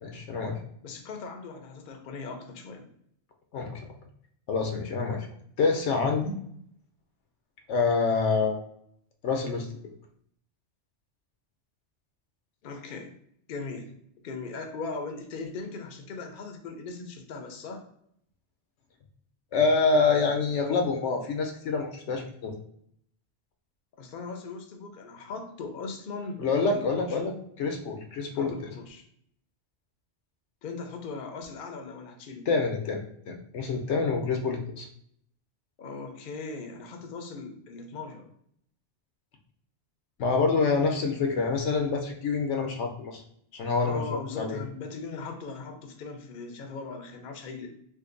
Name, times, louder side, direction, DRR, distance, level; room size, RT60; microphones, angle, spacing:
voice 1, 0.0-0.6 3.5-3.8 4.5-5.3 5.6-6.3 7.7-8.6 9.2-9.7 19.5-22.5 26.4-28.5 32.5-34.9 40.2-43.2 43.5-44.0 44.4-44.6, left 4 dB, 85° left, 3 dB, 1.0 m, -26 dB
voice 2, 0.8-2.9 12.6-13.1 13.5-14.0 14.2-17.9 23.9-27.2 28.3-29.0 30.6-32.5 35.8-38.3 43.8-47.7, left 4 dB, 55° left, 4 dB, 0.7 m, -39 dB
2.6 x 2.6 x 3.8 m, 0.69 s
omnidirectional pair, 1.2 m